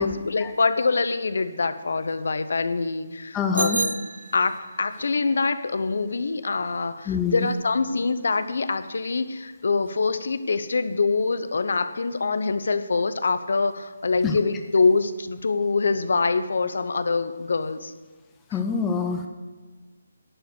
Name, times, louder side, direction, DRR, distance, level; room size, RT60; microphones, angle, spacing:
voice 1, 0.0-4.0 4.3-17.9, left 4 dB, 60° left, 12 dB, 0.7 m, -25 dB
voice 2, 3.3-3.8 7.1-7.5 14.2-14.4 18.5-19.3, left 6 dB, 10° left, 4 dB, 0.4 m, -25 dB
Bicycle bell, 3.5-4.8, right 3 dB, 80° right, 0.6 m, -29 dB
11.0 x 5.0 x 7.9 m, 1.3 s
hypercardioid pair, 170°, 0 cm